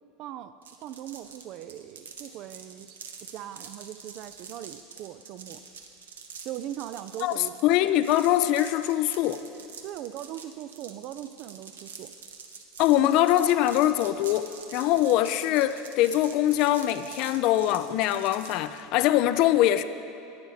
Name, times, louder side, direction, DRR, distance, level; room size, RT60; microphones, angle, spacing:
voice 1, 0.2-0.5 0.8-5.6 6.4-7.5 9.8-12.1, right 12 dB, 50° right, 12 dB, 0.3 m, -40 dB
sound 1, 0.6-18.8, right 6 dB, 75° right, 0.8 m, -46 dB
voice 2, 7.2-9.4 12.8-19.8, left 13 dB, 50° left, 13 dB, 0.3 m, -23 dB
11.0 x 8.9 x 4.0 m, 2.7 s
figure-of-eight pair, 75°, 0 cm